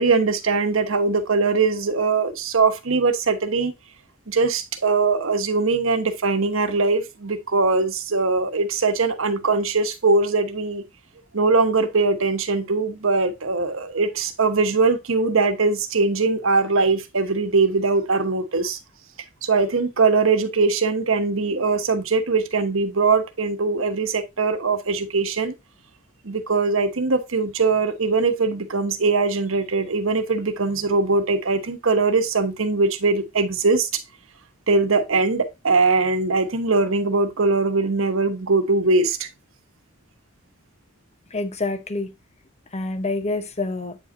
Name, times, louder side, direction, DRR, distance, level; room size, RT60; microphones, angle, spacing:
voice 1, 0.0-3.7 4.3-10.8 11.3-18.8 19.4-25.5 26.2-34.0 34.7-39.3, right 3 dB, 75° right, 1.1 m, -21 dB
voice 2, 41.3-42.1 42.7-44.0, left 2 dB, 35° left, 0.9 m, -27 dB
8.5 x 5.1 x 2.6 m
head